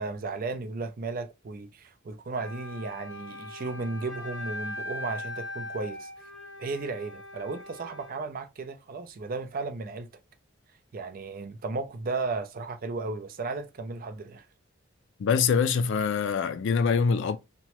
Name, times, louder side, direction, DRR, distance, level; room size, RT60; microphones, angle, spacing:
voice 1, 0.0-6.1 6.6-10.1 10.9-14.5, right 3 dB, 45° right, 0.4 m, -34 dB
Wind instrument woodwind instrument, 2.3-8.2, left 1 dB, 5° left, 1.2 m, -40 dB
voice 2, 15.2-17.4, left 6 dB, 60° left, 0.3 m, -24 dB
2.9 x 2.2 x 2.9 m
head